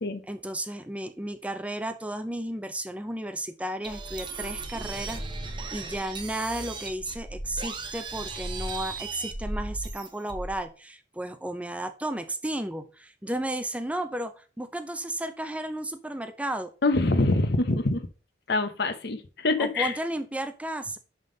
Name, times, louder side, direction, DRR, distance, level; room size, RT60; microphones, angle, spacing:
voice 1, 0.3-5.2 5.7-16.7 19.6-21.0, right 1 dB, 5° right, 10 dB, 0.4 m, -33 dB
sound 1, 3.8-10.6, right 3 dB, 25° right, 0.8 m, -36 dB
voice 2, 16.8-18.1 18.5-19.9, left 2 dB, 60° left, 11 dB, 0.8 m, -25 dB
10.5 x 3.7 x 3.8 m, 0.37 s
head